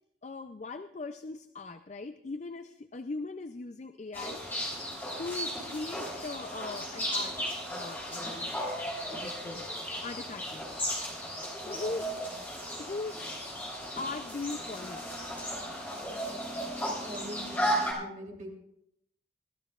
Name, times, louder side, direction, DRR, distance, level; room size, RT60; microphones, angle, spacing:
voice 1, 0.2-4.4 5.2-7.4 7.7-8.7 9.1-9.7 10.0-10.8 11.6-12.2 12.8-13.6 14.0-15.0 16.3-16.6, left 3 dB, 40° left, 9 dB, 0.4 m, -40 dB
sound 1, 4.1-17.9, equal, 10° left, 3.4 m, -35 dB
voice 2, 11.6-12.1 16.9-18.5, right 1 dB, 40° right, -1 dB, 3.3 m, -45 dB
21.5 x 14.5 x 2.4 m, 0.76 s
head